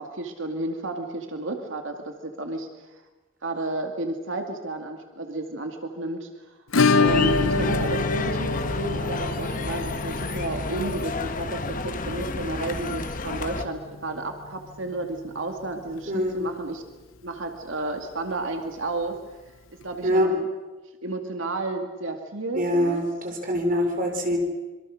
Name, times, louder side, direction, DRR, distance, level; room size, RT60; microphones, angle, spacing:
voice 1, 0.0-2.7 3.4-6.6 7.0-16.8 17.2-19.2 19.8-20.4 21.0-23.1, right 2 dB, 70° right, 5 dB, 2.4 m, -32 dB
Acoustic guitar / Strum, 6.7-15.3 15.6-15.7 16.0-16.1 16.4-16.5 18.6-18.7 19.8-19.9, left 4 dB, 85° left, 1.0 m, -27 dB
sound 1, 7.0-13.6, left 3 dB, 40° left, 1.3 m, -31 dB
voice 2, 22.5-24.4, equal, 45° right, 3 dB, 4.6 m, -24 dB
26.5 x 23.5 x 6.5 m, 1.2 s
head